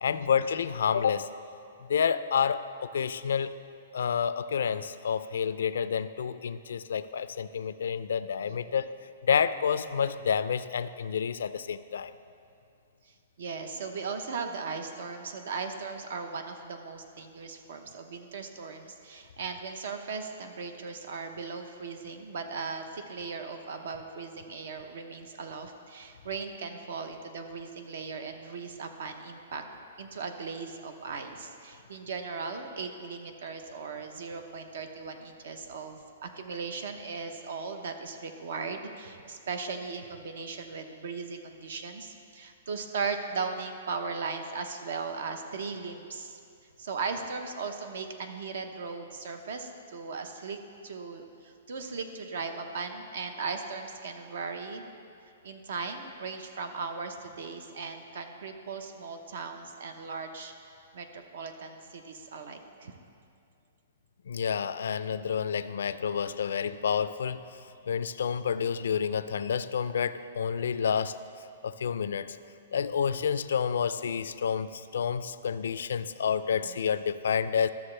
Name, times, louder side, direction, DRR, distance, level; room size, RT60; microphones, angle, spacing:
voice 1, 0.0-1.3 1.8-3.5 3.9-8.9 9.2-12.1 64.3-67.6 67.9-71.1 71.6-72.4 72.7-77.7, left 7 dB, 80° left, 13 dB, 0.3 m, -29 dB
voice 2, 13.4-29.6 30.0-46.4 46.8-54.9 55.4-60.5 60.9-62.9 76.5-76.8, right 4 dB, 70° right, 6 dB, 0.8 m, -38 dB
13.0 x 7.0 x 3.3 m, 2.5 s
hypercardioid pair, 160°, 0 cm